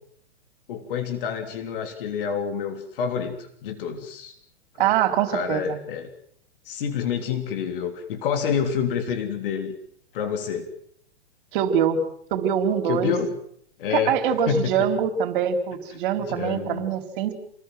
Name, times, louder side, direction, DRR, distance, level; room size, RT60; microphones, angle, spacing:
voice 1, 0.7-4.3 4.8-4.9 5.3-6.1 6.7-9.8 10.1-10.7 12.9-13.3 13.8-14.2 14.5-14.9 15.9-16.9, left 7 dB, 50° left, 7 dB, 3.5 m, -28 dB
voice 2, 4.8-5.8 11.5-12.0 12.3-13.1 13.9-17.3, right 8 dB, 50° right, 8 dB, 4.4 m, -23 dB
28.5 x 20.5 x 7.8 m, 0.66 s
figure-of-eight pair, 110°, 34 cm